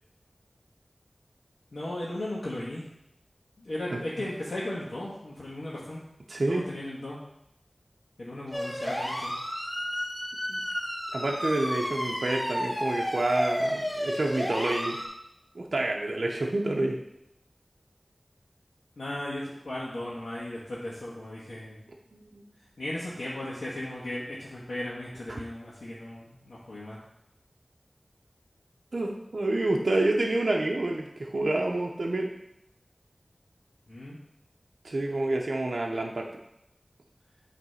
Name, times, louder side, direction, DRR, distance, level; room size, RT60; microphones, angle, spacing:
voice 1, 1.7-2.9 3.6-6.0 6.5-7.2 8.2-9.3 19.0-21.9 22.8-27.0 33.9-34.2, left 1 dB, 85° left, -8 dB, 1.5 m, -36 dB
voice 2, 6.3-6.7 10.5-10.6 11.1-15.0 15.5-17.0 22.1-22.4 25.3-25.4 28.9-32.3 34.8-36.3, right 2 dB, 75° right, 0 dB, 0.7 m, -28 dB
sound 1, 8.5-15.1, equal, 30° left, 2.1 m, -32 dB
7.8 x 3.3 x 5.6 m, 0.84 s
wide cardioid pair, 45°, 0 cm